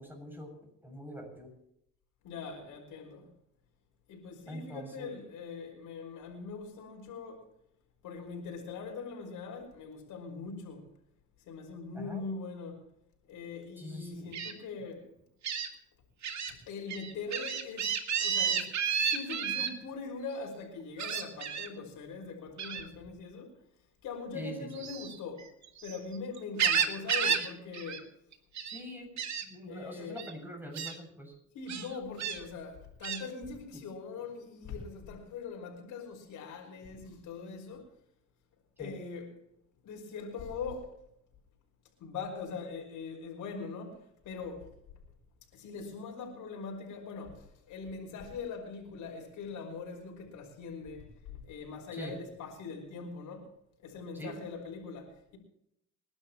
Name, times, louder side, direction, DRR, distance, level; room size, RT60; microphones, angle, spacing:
voice 1, 0.0-1.5 4.5-5.1 11.9-12.2 13.8-14.4 24.3-24.8 28.7-31.3 33.7-33.8 38.8-38.9 51.9-52.1 54.1-54.4, equal, 5° right, 7.0 m, -44 dB
voice 2, 2.2-3.3 4.1-7.5 8.0-10.9 11.5-12.8 13.3-15.1 16.5-17.9 18.2-18.7 19.0-23.5 24.0-25.5 25.8-28.1 29.7-30.2 31.5-37.9 38.8-39.3 39.8-41.0 42.0-44.0 44.2-44.7 45.5-53.5 53.8-55.4, left 4 dB, 90° left, 5.5 m, -42 dB
Gull seagull, 14.3-14.5 15.4-15.7 16.2-16.5 16.9-19.7 21.0-21.7 22.6-22.9 24.7-26.0 26.3-27.5 27.7-28.0 28.3-28.8 29.2-29.4 30.2-30.3 30.7-30.9 31.7-32.4 33.0-33.2, right 7 dB, 65° right, 2.2 m, -31 dB
27.5 x 11.5 x 3.1 m
cardioid pair, 90°, 30 cm